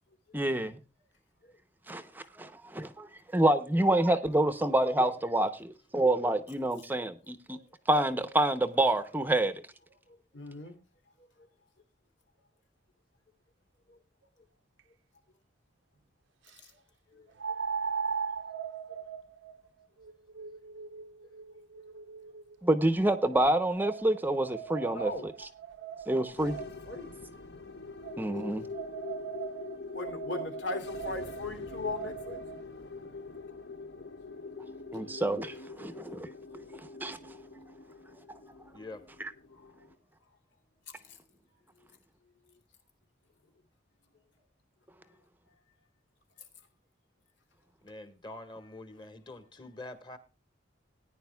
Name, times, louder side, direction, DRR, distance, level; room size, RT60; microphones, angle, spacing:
voice 1, 0.3-0.8 1.9-3.1 3.3-7.6 7.9-9.5 22.6-25.3 26.1-26.6 28.2-28.7 34.9-36.3 37.0-37.2 39.2-39.3, right 1 dB, 10° right, 0.7 m, -27 dB
voice 2, 10.1-10.8 11.4-11.5 13.9-14.0 17.1-17.3 24.9-25.3 26.5-27.1 29.9-32.4 33.4-33.6 35.0-35.1 39.5-39.7 41.0-41.2, left 2 dB, 80° left, 2.7 m, -39 dB
sound 1, 14.8-14.9 17.4-22.6 23.3-27.0 28.0-32.6, right 6 dB, 85° right, 0.7 m, -39 dB
sound 2, 26.4-39.9, left 4 dB, 60° left, 0.9 m, -44 dB
voice 3, 38.7-39.1 47.8-50.2, left 2 dB, 25° left, 1.5 m, -45 dB
18.5 x 10.0 x 2.3 m
head